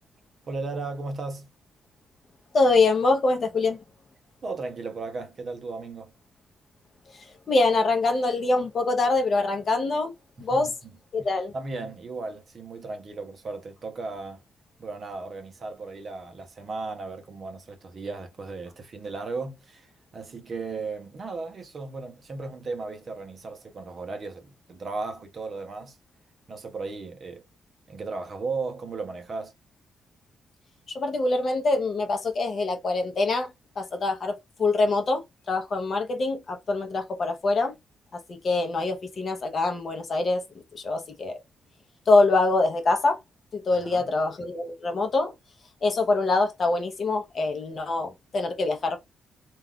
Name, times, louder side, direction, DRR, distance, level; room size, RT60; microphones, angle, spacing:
voice 1, 0.5-1.5 4.4-6.1 10.5-10.7 11.5-14.4 14.8-19.9 20.1-26.0 26.5-27.4 27.9-29.5 43.7-44.1, right 3 dB, 40° right, 0.6 m, -35 dB
voice 2, 2.5-3.8 7.5-10.1 10.4-10.7 11.1-11.5 30.9-33.5 33.8-34.3 34.6-37.7 38.3-40.4 40.7-41.4 42.1-43.2 43.5-45.3 45.8-49.0, left 3 dB, 40° left, 0.6 m, -24 dB
2.3 x 2.3 x 3.5 m
cardioid pair, 145°, 0 cm